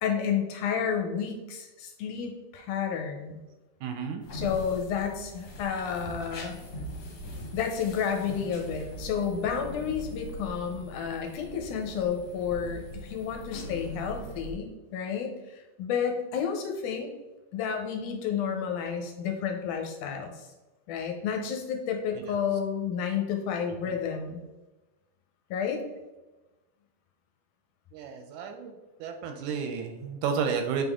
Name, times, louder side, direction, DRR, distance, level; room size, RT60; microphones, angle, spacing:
voice 1, 0.0-3.4 4.3-6.6 7.5-17.1 17.5-20.5 20.9-24.4 25.5-25.8, left 7 dB, 80° left, 4 dB, 2.2 m, -31 dB
voice 2, 3.8-4.2 27.9-28.7 29.0-30.8, right 6 dB, 80° right, 5 dB, 1.9 m, -31 dB
sound 1, 4.2-14.5, equal, 55° left, 2.1 m, -41 dB
7.7 x 3.6 x 3.6 m, 1.1 s
omnidirectional pair, 3.8 m